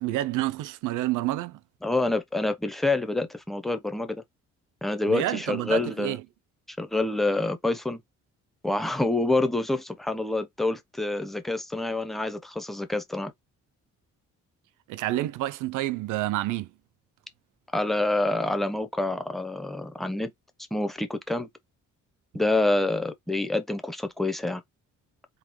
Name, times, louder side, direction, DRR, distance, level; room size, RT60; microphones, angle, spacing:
voice 1, 0.0-1.6 5.1-6.2 14.9-16.7, right 15 dB, 85° right, 0.5 m, -28 dB
voice 2, 1.8-4.2 4.8-6.2 6.8-8.0 8.6-13.3 17.7-20.3 20.7-21.5 22.3-24.6, left 2 dB, ahead, 0.8 m, -27 dB
3.8 x 2.8 x 3.0 m
cardioid pair, 90°, 30 cm